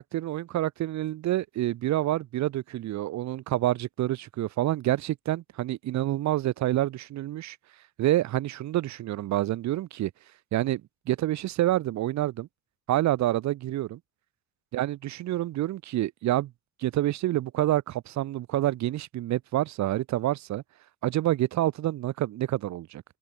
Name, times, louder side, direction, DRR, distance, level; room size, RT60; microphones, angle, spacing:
voice 1, 0.0-7.6 8.0-10.1 10.5-12.5 12.9-14.0 14.7-16.5 16.8-20.6 21.0-23.0, right 14 dB, 50° right, 0.6 m, -27 dB
open air
cardioid pair, 175°, 35 cm